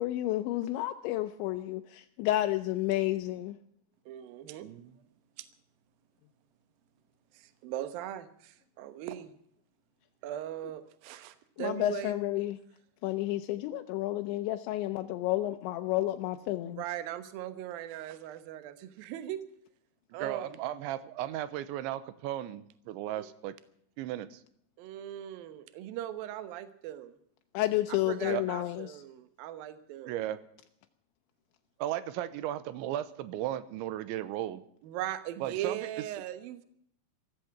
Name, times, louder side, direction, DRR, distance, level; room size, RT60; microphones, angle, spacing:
voice 1, 0.0-3.6 11.6-12.6 13.0-16.8 27.5-29.0, left 15 dB, 80° left, 7 dB, 3.0 m, -31 dB
voice 2, 4.1-4.7 5.4-5.5 7.3-9.3 10.2-12.1 16.6-19.4 20.1-20.6 23.2-23.3 24.8-27.1 27.9-30.2 34.8-36.7, right 12 dB, 70° right, 11 dB, 2.5 m, -39 dB
voice 3, 4.6-4.9 20.2-23.6 24.0-24.4 28.2-28.4 30.1-30.4 31.8-34.6 35.4-35.9, right 12 dB, 90° right, 14 dB, 3.2 m, -35 dB
15.0 x 14.5 x 5.9 m, 0.68 s
omnidirectional pair, 5.2 m